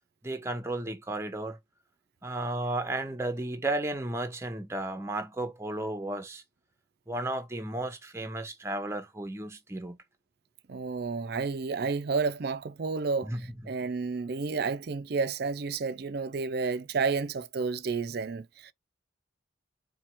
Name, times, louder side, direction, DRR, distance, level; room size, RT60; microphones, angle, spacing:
voice 1, 0.2-1.6 2.2-6.4 7.1-10.0 13.2-13.7, right 1 dB, 15° right, 0.8 m, -34 dB
voice 2, 10.7-18.7, right 4 dB, 55° right, 0.4 m, -31 dB
4.4 x 2.4 x 4.3 m
head